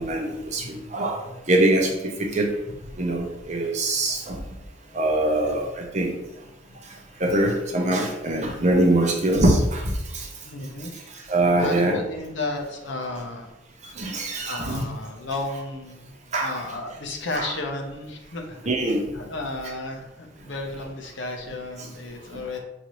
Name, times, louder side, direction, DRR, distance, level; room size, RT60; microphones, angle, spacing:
voice 1, 0.0-2.5 3.0-4.4 4.9-6.2 6.9-10.3 11.1-12.0 13.8-14.9 16.3-16.5 17.3-17.5 18.7-19.1, right 1 dB, 35° right, 1 dB, 0.7 m, -23 dB
voice 2, 10.4-11.1 11.6-13.5 14.5-18.6 19.1-22.6, left 2 dB, 70° left, 2 dB, 0.8 m, -33 dB
5.9 x 2.6 x 3.0 m, 0.92 s
head